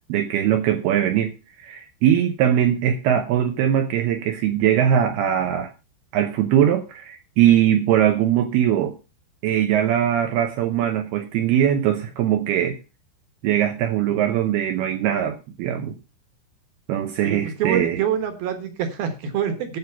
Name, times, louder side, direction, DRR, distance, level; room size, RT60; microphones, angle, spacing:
voice 1, 0.1-1.3 1.6-5.7 6.1-8.9 9.4-12.8 13.4-16.0 16.9-18.0, right 10 dB, 90° right, 2.2 m, -21 dB
voice 2, 17.2-19.8, right 8 dB, 65° right, 2.5 m, -26 dB
11.0 x 7.7 x 5.7 m
omnidirectional pair, 5.8 m